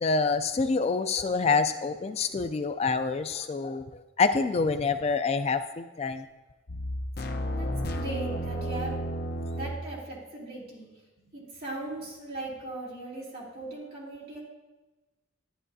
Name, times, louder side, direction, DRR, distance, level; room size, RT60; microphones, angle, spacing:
voice 1, 0.0-3.8 4.2-6.2, left 4 dB, 35° left, 9 dB, 0.3 m, -26 dB
sound 1, 6.7-9.9, equal, 55° left, 0.7 m, -32 dB
voice 2, 7.5-9.0 9.5-11.0 11.3-14.4, right 2 dB, 50° right, -6 dB, 2.8 m, -39 dB
11.0 x 10.0 x 2.7 m, 1.2 s
head